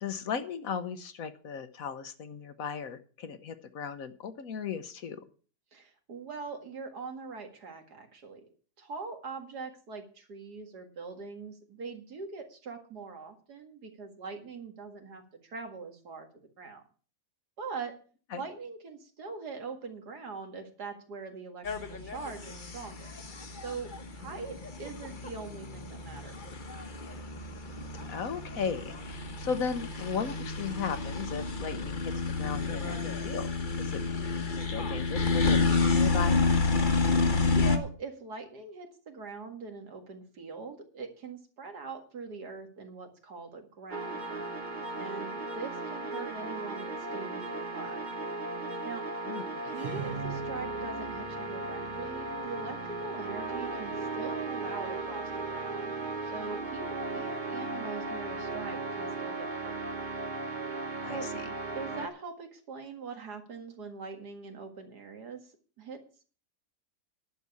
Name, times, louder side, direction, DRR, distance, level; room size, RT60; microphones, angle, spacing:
voice 1, 0.0-5.2 18.3-18.4 24.2-24.3 28.1-33.0 33.2-33.5 33.8-34.0 34.7-36.4 49.3-49.8 61.0-61.5, left 6 dB, 60° left, 11 dB, 1.3 m, -36 dB
voice 2, 5.7-8.5 8.8-16.3 16.6-16.8 17.6-18.0 18.3-23.1 23.6-26.4 37.5-44.5 45.0-48.1 48.8-49.0 49.7-59.9 61.1-61.3 61.7-65.5 65.8-66.0, right 4 dB, 75° right, 5 dB, 2.5 m, -42 dB
sound 1, 21.6-37.8, left 4 dB, 30° left, 1.2 m, -30 dB
sound 2, 43.9-62.1, right 3 dB, 30° right, 1.1 m, -36 dB
11.0 x 7.0 x 8.3 m, 0.40 s
omnidirectional pair, 1.7 m